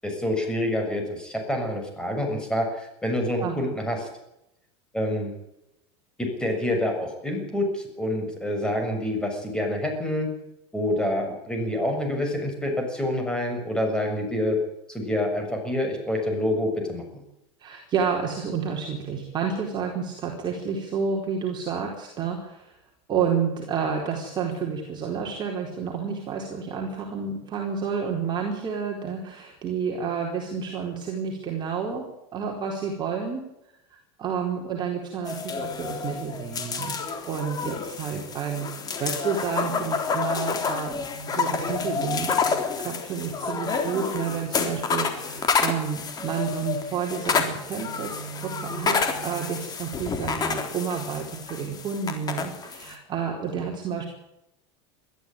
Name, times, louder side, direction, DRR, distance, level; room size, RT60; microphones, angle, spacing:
voice 1, 0.0-4.0 4.9-5.3 6.2-10.3 10.7-14.6 14.9-17.0 38.1-38.2, left 1 dB, 5° left, 3 dB, 7.1 m, -27 dB
voice 2, 17.6-22.7 23.1-33.4 33.9-36.9 37.2-48.1 48.4-54.1, right 6 dB, 30° right, -1 dB, 4.4 m, -30 dB
sound 1, 35.2-52.9, left 5 dB, 25° left, 3.7 m, -29 dB
21.5 x 14.0 x 9.1 m, 0.85 s
supercardioid pair, 130°, 15 cm